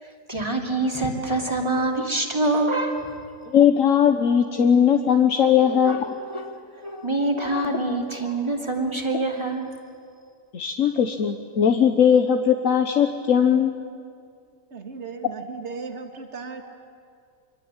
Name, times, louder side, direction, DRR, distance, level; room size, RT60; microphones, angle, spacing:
voice 1, 0.0-3.1 5.6-6.0 6.3-6.5 6.8-9.7, right 2 dB, 20° right, 1 dB, 2.7 m, -25 dB
voice 2, 3.5-6.1 10.5-13.8, left 8 dB, 70° left, 5 dB, 1.5 m, -19 dB
voice 3, 14.7-16.6, right 5 dB, 55° right, 5 dB, 2.1 m, -36 dB
25.0 x 24.0 x 8.9 m, 2.2 s
omnidirectional pair, 1.4 m